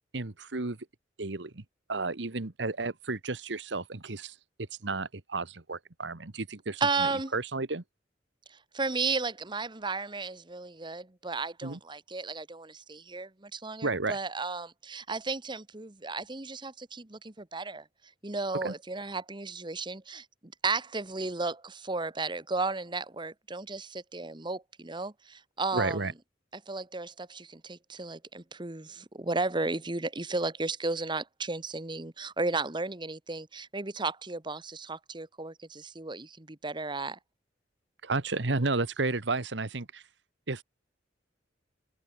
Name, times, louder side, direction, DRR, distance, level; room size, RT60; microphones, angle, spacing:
voice 1, 0.1-0.8 1.2-4.4 4.8-7.8 11.6-11.8 13.8-14.2 18.6-18.7 25.7-26.1 38.0-40.0 40.5-40.6, right 3 dB, 75° right, 1.4 m, -32 dB
voice 2, 6.8-7.3 8.5-17.8 18.2-26.0 26.7-37.2, right 3 dB, 25° right, 1.3 m, -34 dB
head